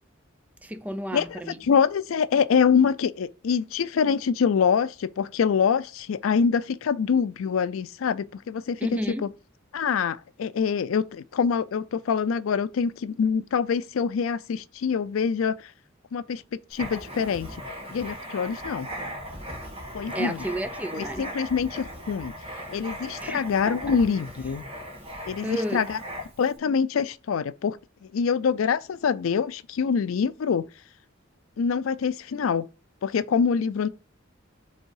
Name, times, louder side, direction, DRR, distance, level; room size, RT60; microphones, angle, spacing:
voice 1, 0.6-1.6 8.8-9.3 20.1-21.2 23.2-24.0 25.4-25.8, equal, 10° right, 0.4 m, -32 dB
voice 2, 1.1-9.3 9.7-15.7 16.1-17.6 17.9-18.9 19.9-20.4 20.9-22.3 22.7-24.6 25.3-26.0 26.4-30.7 31.6-32.7 33.0-33.9, left 6 dB, 90° left, 0.4 m, -25 dB
Writing, 16.7-26.5, equal, 30° right, 1.7 m, -38 dB
5.5 x 3.7 x 4.7 m
head